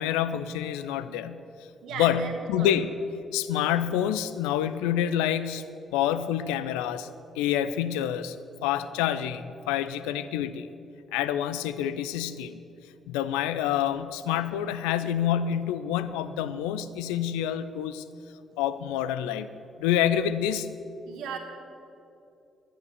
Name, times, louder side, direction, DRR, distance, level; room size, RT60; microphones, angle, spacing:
voice 1, 0.0-1.4 2.0-2.9 3.3-7.1 7.4-8.4 8.6-10.7 11.1-12.6 13.1-18.0 18.6-19.5 19.8-20.7, left 10 dB, 75° left, 13 dB, 0.4 m, -27 dB
voice 2, 1.8-2.7 21.1-21.4, right 6 dB, 65° right, 4 dB, 1.4 m, -36 dB
10.5 x 10.5 x 6.8 m, 2.7 s
figure-of-eight pair, 40°, 0 cm